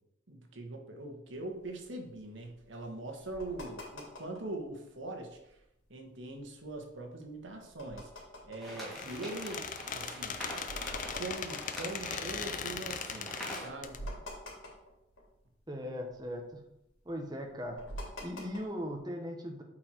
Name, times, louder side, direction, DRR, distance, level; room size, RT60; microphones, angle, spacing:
voice 1, 0.3-5.6 5.9-8.1 8.4-10.4 11.1-14.0, right 2 dB, 70° right, 2 dB, 1.5 m, -42 dB
items rattling on a table, 1.4-4.6 5.0-5.6 6.0-12.7 13.2-13.3 13.5-15.7 15.9-19.0, equal, 85° left, 3.1 m, -47 dB
sound 1, 8.6-13.7, equal, ahead, 2.4 m, -44 dB
Squeak, 8.8-14.0, left 7 dB, 40° left, 0.5 m, -39 dB
voice 2, 15.7-16.6 17.0-17.8 18.2-19.6, equal, 20° right, 2 dB, 1.1 m, -38 dB
8.4 x 4.6 x 4.5 m, 0.84 s
head